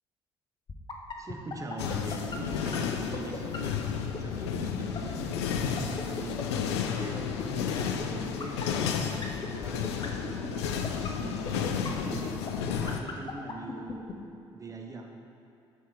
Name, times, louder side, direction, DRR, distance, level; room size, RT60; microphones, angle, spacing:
sound 1, 0.7-14.1, left 5 dB, 30° left, 0.8 m, -36 dB
voice 1, 1.2-14.1 14.5-15.1, right 2 dB, 20° right, 2 dB, 0.9 m, -42 dB
sound 2, 1.8-13.0, left 7 dB, 70° left, 0.4 m, -32 dB
6.9 x 4.5 x 4.9 m, 2.5 s
figure-of-eight pair, 45°, 14 cm